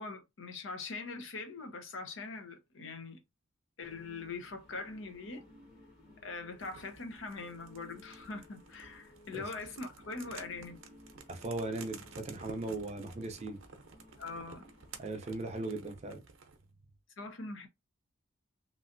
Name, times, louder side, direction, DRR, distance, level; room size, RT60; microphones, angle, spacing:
voice 1, 0.0-3.2 3.8-5.4 6.2-10.8 14.2-14.6 17.2-17.7, left 3 dB, 65° left, 0.7 m, -42 dB
sound 1, 3.8-15.6, left 1 dB, 30° left, 1.3 m, -59 dB
sound 2, 6.6-16.6, right 5 dB, 75° right, 0.6 m, -53 dB
voice 2, 11.3-13.6 15.0-16.2, right 2 dB, 35° right, 0.6 m, -38 dB
3.1 x 2.5 x 2.5 m
head